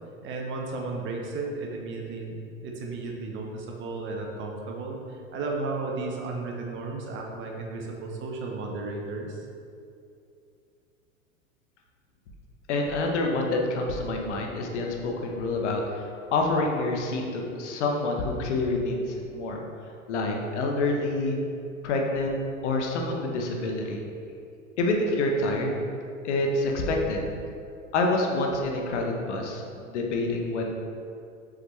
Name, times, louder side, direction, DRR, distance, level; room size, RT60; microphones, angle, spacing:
voice 1, 0.2-9.4, right 3 dB, 30° right, 1 dB, 1.0 m, -34 dB
voice 2, 12.7-19.6 20.1-21.4 21.8-22.4 22.6-24.0 24.8-25.8 26.2-27.3 27.9-30.7, left 2 dB, 55° left, 1 dB, 1.2 m, -27 dB
7.5 x 6.3 x 3.3 m, 2.5 s
figure-of-eight pair, 95°, 42 cm